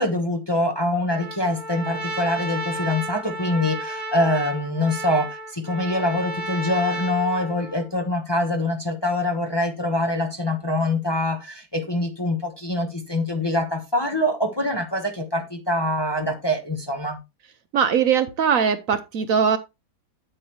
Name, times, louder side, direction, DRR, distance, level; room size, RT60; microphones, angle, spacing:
voice 1, 0.0-17.2, left 1 dB, 20° left, 0.9 m, -24 dB
Trumpet, 1.1-7.9, right 1 dB, 25° right, 1.5 m, -32 dB
voice 2, 17.7-19.6, right 7 dB, 65° right, 1.0 m, -20 dB
8.7 x 7.8 x 3.1 m
omnidirectional pair, 1.7 m